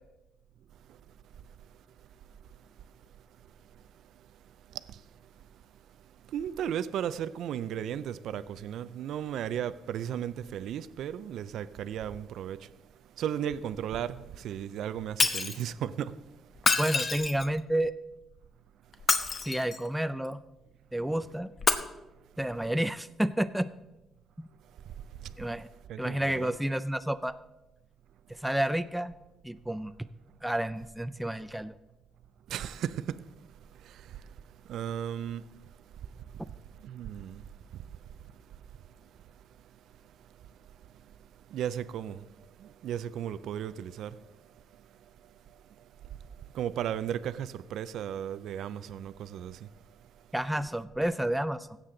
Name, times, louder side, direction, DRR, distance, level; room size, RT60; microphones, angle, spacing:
voice 1, 6.3-12.7 13.2-16.2 25.2-25.3 25.9-26.5 32.5-33.2 33.8-34.0 34.7-35.4 36.8-37.4 41.5-42.2 42.6-44.1 46.5-49.6, right 9 dB, 75° right, 0.4 m, -35 dB
Shatter, 15.2-15.6 16.6-17.6 18.9-19.9 21.6-21.7, left 4 dB, 40° left, 0.9 m, -27 dB
voice 2, 16.8-17.9 19.5-20.4 20.9-21.5 22.4-23.7 25.4-25.7 26.0-27.4 28.4-29.1 29.4-29.9 30.4-31.7 50.3-51.8, right 1 dB, 5° right, 0.4 m, -30 dB
16.0 x 7.5 x 3.8 m
cardioid pair, 90°, 0 cm